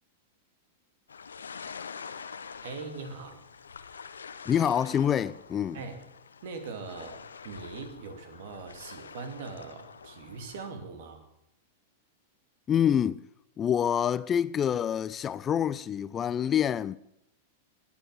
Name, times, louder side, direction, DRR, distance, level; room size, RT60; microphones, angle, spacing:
sound 1, 1.1-10.7, left 6 dB, 75° left, 1.0 m, -46 dB
voice 1, 2.6-3.4 5.7-6.0 6.4-11.2, right 4 dB, 55° right, 2.6 m, -41 dB
voice 2, 4.5-5.8 12.7-13.2 13.6-17.0, left 9 dB, 25° left, 0.4 m, -26 dB
21.5 x 8.2 x 6.9 m
figure-of-eight pair, 95°, 0 cm